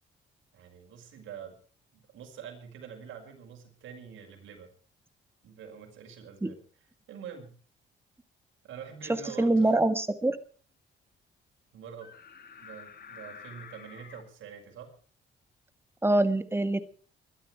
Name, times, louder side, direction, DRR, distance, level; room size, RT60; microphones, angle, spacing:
voice 1, 0.5-1.6 1.9-4.7 5.4-6.6 7.1-7.6 8.6-9.8 11.7-12.1 12.6-14.9, right 7 dB, 80° right, 3 dB, 5.6 m, -45 dB
voice 2, 9.4-10.4 16.0-16.8, right 2 dB, 10° right, 11 dB, 1.8 m, -24 dB
sound 1, 12.0-14.2, left 6 dB, 50° left, 2.7 m, -48 dB
22.0 x 12.5 x 4.6 m, 0.41 s
cardioid pair, 90°, 20 cm